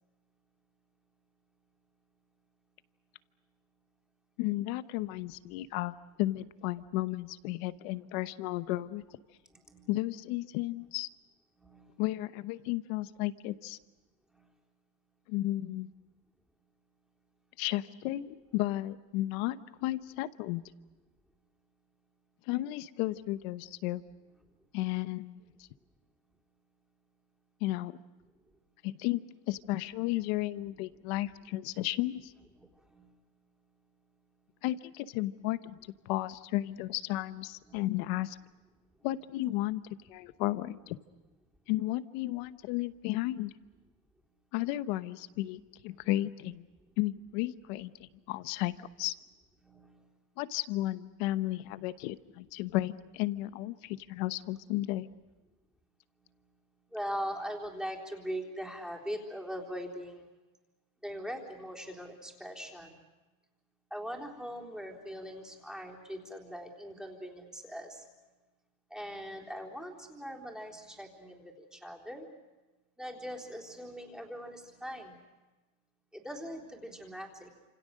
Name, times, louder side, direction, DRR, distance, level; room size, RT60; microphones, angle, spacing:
voice 1, 4.4-9.0 9.9-11.1 12.0-13.8 15.3-15.9 17.6-20.6 22.5-24.0 24.7-25.4 27.6-27.9 28.8-32.3 34.6-35.8 36.1-38.4 39.0-39.8 40.1-41.0 41.7-43.5 44.5-46.7 47.0-49.1 50.4-55.1, left 16 dB, 90° left, 13 dB, 1.0 m, -33 dB
voice 2, 9.5-9.9 11.6-12.0 14.3-14.5 32.6-33.2 37.6-37.8 49.6-50.2 56.2-56.3 56.9-60.3 61.0-63.0 63.9-68.1 68.9-72.3 73.0-75.2 76.1-77.6, equal, ahead, 0 dB, 3.7 m, -41 dB
28.5 x 27.5 x 6.5 m, 1.1 s
cardioid pair, 145°, 40 cm